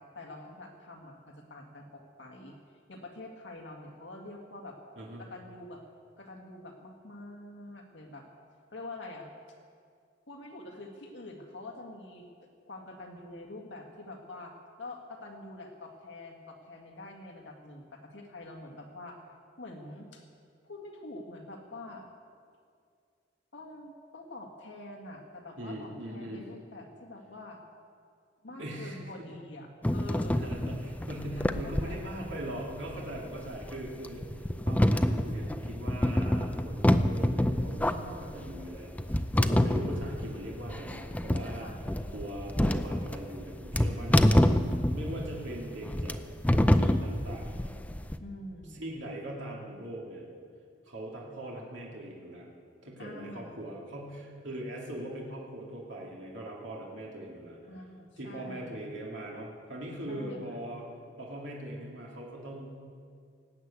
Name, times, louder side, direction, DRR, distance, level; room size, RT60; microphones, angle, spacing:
voice 1, 0.0-2.6 2.9-4.8 5.2-5.8 6.2-8.3 8.7-9.3 10.3-12.3 12.7-19.2 19.6-20.2 20.6-22.1 23.5-27.6 28.4-30.5 31.4-32.3 37.9-38.6 41.6-41.8 48.2-48.8 53.0-53.6 57.7-58.9 60.1-60.6, left 2 dB, 65° left, 1 dB, 1.8 m, -46 dB
voice 2, 25.6-26.4 28.6-29.4 30.3-41.7 42.1-44.5 44.9-46.2 46.7-47.7 48.7-50.3 50.9-52.5 52.8-57.6 58.2-60.9 61.2-62.8, right 1 dB, 70° right, -3 dB, 2.6 m, -41 dB
sound 1, 29.8-48.2, left 1 dB, 10° left, 0.4 m, -27 dB
19.0 x 8.2 x 8.3 m, 2.2 s
head